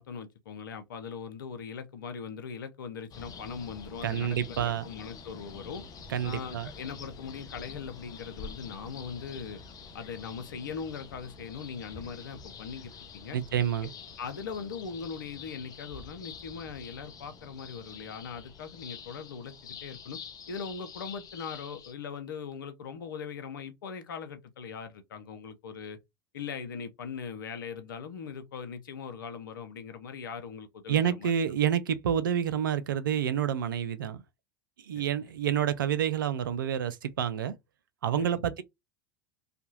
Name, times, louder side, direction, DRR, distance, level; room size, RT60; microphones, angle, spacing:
voice 1, 0.0-5.8 6.2-9.6 9.9-13.4 13.8-13.9 14.2-20.2 20.5-26.0 26.3-31.3 34.9-35.0 38.2-38.4, left 6 dB, 80° left, 0.6 m, -40 dB
sound 1, 3.1-21.9, left 5 dB, 35° left, 0.7 m, -47 dB
voice 2, 4.0-4.9 6.1-6.7 13.3-13.9 30.9-34.2 34.9-37.5 38.0-38.6, right 9 dB, 85° right, 0.4 m, -28 dB
2.7 x 2.5 x 2.7 m
hypercardioid pair, 80°, 11 cm